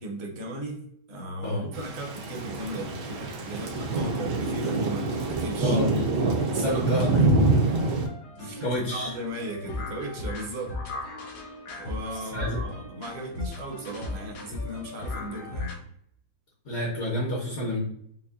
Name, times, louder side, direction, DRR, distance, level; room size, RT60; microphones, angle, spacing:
voice 1, 0.0-6.0 6.5-7.9 8.4-10.8 11.7-15.8, right 1 dB, 50° right, 1 dB, 0.9 m, -37 dB
Thunder / Rain, 1.7-8.1, right 3 dB, 80° right, 1.3 m, -25 dB
voice 2, 6.5-7.2 8.6-9.1 12.1-12.6 16.6-17.8, left 1 dB, 50° left, -3 dB, 1.1 m, -29 dB
sound 1, 7.7-15.8, left 2 dB, 75° left, 1.3 m, -37 dB
5.4 x 2.2 x 2.4 m, 0.69 s
omnidirectional pair, 1.8 m